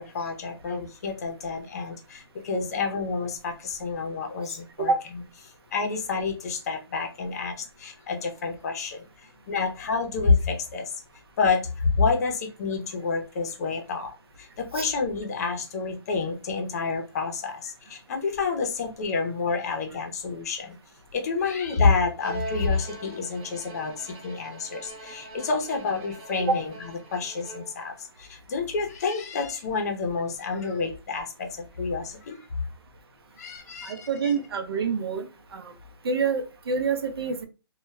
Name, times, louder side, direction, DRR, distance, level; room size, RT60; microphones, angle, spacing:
voice 1, 0.0-4.9 5.7-10.9 11.4-14.1 14.4-20.8 21.1-26.7 27.1-31.5 31.8-32.4 33.4-34.1, left 4 dB, 40° left, 0.6 m, -28 dB
Bowed string instrument, 22.2-27.9, right 2 dB, 20° right, 0.5 m, -42 dB
voice 2, 33.8-35.7 36.0-37.4, right 5 dB, 70° right, 0.6 m, -27 dB
2.2 x 2.2 x 3.1 m
hypercardioid pair, 160°, 13 cm